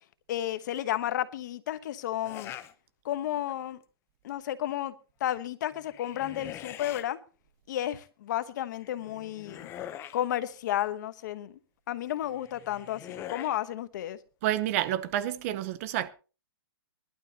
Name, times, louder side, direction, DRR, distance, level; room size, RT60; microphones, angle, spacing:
voice 1, 0.3-2.5 3.0-3.8 4.2-4.9 5.2-7.2 7.7-9.7 10.1-11.5 11.9-14.2, left 12 dB, 50° left, 1.1 m, -32 dB
sound 1, 2.2-2.7 3.2-3.7 5.7-7.0 8.8-10.2 12.2-13.6, left 11 dB, 20° left, 0.8 m, -43 dB
voice 2, 14.4-16.1, right 12 dB, 35° right, 0.8 m, -29 dB
20.5 x 12.0 x 2.9 m
hypercardioid pair, 155°, 13 cm